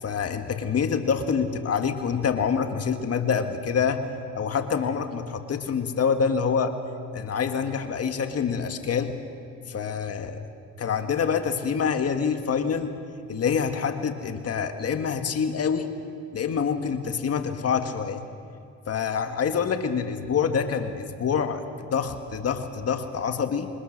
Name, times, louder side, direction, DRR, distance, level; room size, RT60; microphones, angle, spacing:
voice 1, 0.0-4.1 4.3-6.7 7.1-9.2 9.7-10.4 10.8-13.0 13.3-15.9 16.3-18.2 18.9-23.7, left 6 dB, 55° left, 7 dB, 1.7 m, -26 dB
26.0 x 24.5 x 6.6 m, 2.5 s
cardioid pair, 90°, 30 cm